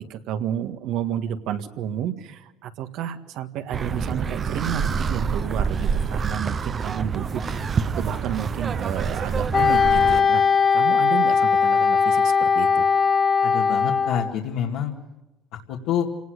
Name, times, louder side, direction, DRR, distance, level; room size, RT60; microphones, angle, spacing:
voice 1, 0.1-7.4 8.0-10.4 10.7-12.8, right 9 dB, 65° right, 8 dB, 1.7 m, -31 dB
sound 1, 3.7-10.2, right 6 dB, 30° right, 0.8 m, -27 dB
Wind instrument woodwind instrument, 9.5-14.3, left 6 dB, 30° left, 1.1 m, -19 dB
voice 2, 13.4-14.9 15.7-16.1, left 9 dB, 75° left, -2 dB, 2.3 m, -27 dB
28.0 x 18.5 x 6.5 m, 0.99 s
cardioid pair, 125°, 0 cm